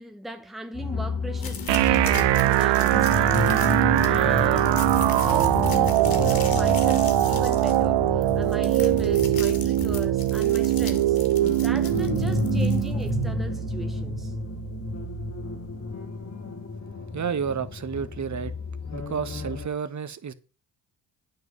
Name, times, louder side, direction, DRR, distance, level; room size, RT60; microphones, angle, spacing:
voice 1, 0.0-11.2 11.6-14.4, right 1 dB, ahead, 1.2 m, -38 dB
sound 1, 0.7-19.7, left 4 dB, 35° left, 2.7 m, -32 dB
sound 2, 1.4-13.1, left 6 dB, 55° left, 2.3 m, -40 dB
sound 3, 1.7-15.7, right 15 dB, 75° right, 0.8 m, -22 dB
voice 2, 17.1-18.5 18.9-20.3, right 6 dB, 40° right, 1.3 m, -31 dB
9.3 x 5.0 x 7.5 m
supercardioid pair, 75°, 43 cm